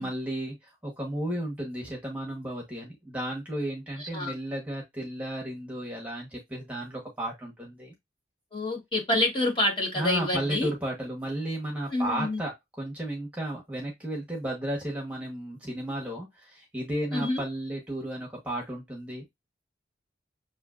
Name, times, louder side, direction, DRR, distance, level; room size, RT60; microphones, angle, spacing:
voice 1, 0.0-7.9 9.9-12.5 12.8-19.3, right 1 dB, 10° right, 1.1 m, -33 dB
voice 2, 4.0-4.3 8.5-10.7 11.9-12.4 17.1-17.4, left 2 dB, 25° left, 1.4 m, -27 dB
6.6 x 2.8 x 2.4 m
head